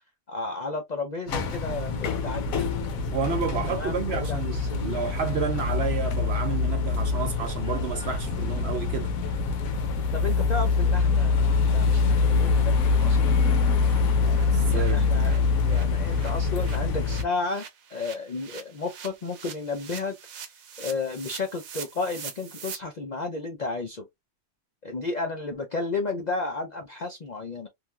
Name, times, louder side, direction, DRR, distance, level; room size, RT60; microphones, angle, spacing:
voice 1, 0.3-2.7 3.7-5.0 10.1-13.4 14.7-20.2 20.8-24.0 24.8-27.7, left 3 dB, 65° left, 0.4 m, -33 dB
sound 1, 1.3-17.2, left 4 dB, 85° left, 1.1 m, -24 dB
voice 2, 3.1-9.1 14.5-15.1, right 6 dB, 60° right, 0.8 m, -30 dB
sound 2, 9.8-9.9 10.2-10.3 10.7-10.8 11.1-11.2 11.6-11.7 12.0-12.1 12.5-12.6 12.9-22.8, right 7 dB, 80° right, 1.2 m, -44 dB
3.1 x 2.5 x 2.2 m
omnidirectional pair, 1.4 m